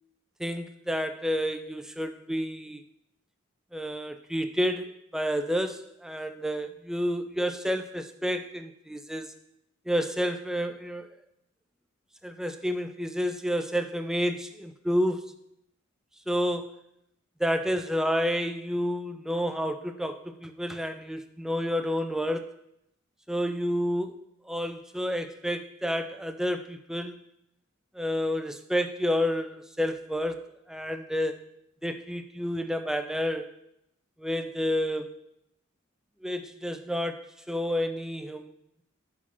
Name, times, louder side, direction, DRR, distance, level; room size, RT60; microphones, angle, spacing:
voice 1, 0.4-2.8 3.7-9.3 9.9-11.1 12.2-15.3 16.3-16.7 17.4-22.5 23.3-24.2 24.5-27.2 27.9-31.5 31.8-33.5 34.2-35.2 36.2-38.5, equal, 5° right, 8 dB, 0.3 m, -30 dB
5.8 x 4.8 x 5.5 m, 0.80 s
head